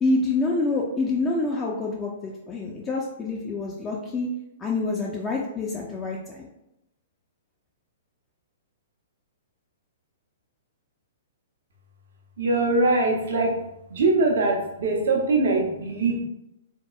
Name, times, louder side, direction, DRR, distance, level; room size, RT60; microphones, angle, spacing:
voice 1, 0.0-4.3 4.6-6.5, left 3 dB, 20° left, -2 dB, 0.4 m, -27 dB
voice 2, 12.4-13.6 13.9-16.2, right 2 dB, 60° right, -1 dB, 0.8 m, -22 dB
3.7 x 2.9 x 2.3 m, 0.85 s
figure-of-eight pair, 110°, 0 cm